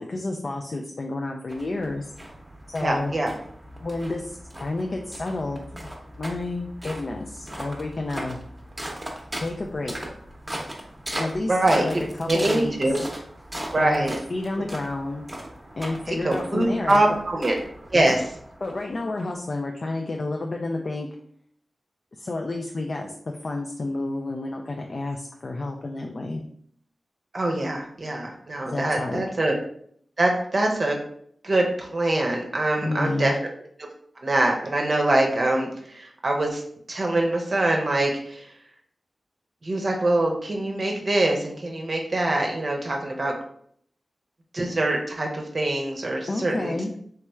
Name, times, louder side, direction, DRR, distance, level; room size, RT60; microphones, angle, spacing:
voice 1, 0.0-2.1 2.7-3.1 3.8-5.9 6.2-8.4 9.4-10.0 11.2-12.7 13.8-14.0 14.3-15.3 15.8-17.2 17.9-18.2 18.6-21.1 22.1-26.4 28.7-29.2 32.8-33.3 46.3-46.9, left 2 dB, 60° left, 2 dB, 0.3 m, -30 dB
sound 1, 1.5-19.2, right 1 dB, 15° right, 0.8 m, -38 dB
voice 2, 2.8-3.3 11.5-11.8 12.3-13.0 13.7-14.2 16.1-17.5 17.9-18.2 27.3-29.5 30.2-31.0 31.4-33.3 34.2-36.6 36.9-38.5 39.6-43.3 44.5-47.0, right 1 dB, 55° right, 1 dB, 0.6 m, -24 dB
3.3 x 3.0 x 2.3 m, 0.63 s
cardioid pair, 45°, 0 cm